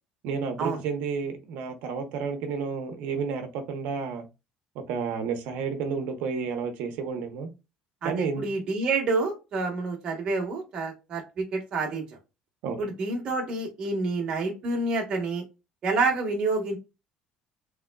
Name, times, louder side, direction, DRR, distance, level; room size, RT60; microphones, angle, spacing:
voice 1, 0.2-4.2 4.7-7.5 8.0-8.4 12.6-12.9, right 5 dB, 75° right, 7 dB, 0.7 m, -31 dB
voice 2, 8.0-12.0 12.8-15.4 15.8-16.8, right 3 dB, 35° right, 0 dB, 1.0 m, -28 dB
3.5 x 3.1 x 2.2 m, 0.27 s
cardioid pair, 175°, 3 cm